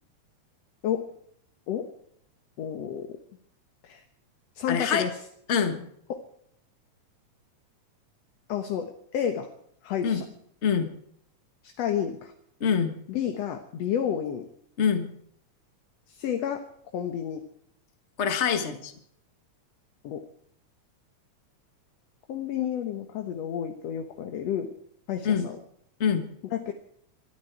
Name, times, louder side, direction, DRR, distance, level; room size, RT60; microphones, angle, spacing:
voice 1, 2.6-3.2 3.8-4.0 4.6-5.2 6.1-6.2 8.5-9.5 9.8-10.2 11.6-12.3 13.1-14.5 16.1-16.6 16.9-17.4 20.0-20.2 22.3-24.7 25.1-25.6 26.5-26.7, left 9 dB, 65° left, 5 dB, 2.2 m, -30 dB
voice 2, 4.7-5.1 5.5-5.9 10.0-10.2 10.6-10.9 12.6-12.9 14.8-15.1 18.2-18.9 25.2-25.5 26.0-26.3, left 7 dB, 35° left, 7 dB, 1.2 m, -25 dB
23.5 x 13.0 x 4.7 m, 0.67 s
omnidirectional pair, 3.5 m